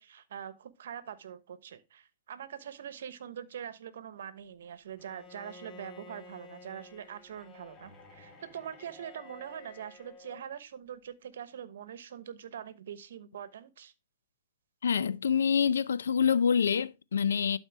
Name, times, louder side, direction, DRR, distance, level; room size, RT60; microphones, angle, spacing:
voice 1, 0.0-13.9, right 9 dB, 75° right, 1.0 m, -43 dB
Bowed string instrument, 5.0-10.5, left 3 dB, 25° left, 1.4 m, -52 dB
voice 2, 14.8-17.6, left 7 dB, 85° left, 0.5 m, -26 dB
12.0 x 4.4 x 3.4 m
hypercardioid pair, 135°, 0 cm